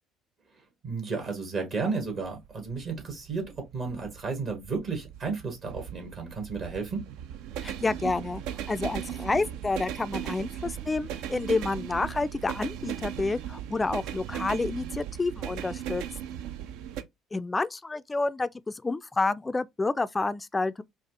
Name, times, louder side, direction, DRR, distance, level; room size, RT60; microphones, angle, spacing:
voice 1, 0.8-7.1, right 4 dB, 50° right, 1.4 m, -33 dB
sound 1, 2.1-17.0, right 10 dB, 65° right, 0.4 m, -38 dB
voice 2, 7.6-16.0 17.3-20.8, left 3 dB, 20° left, 0.3 m, -29 dB
4.1 x 2.4 x 2.6 m
figure-of-eight pair, 55°, 0 cm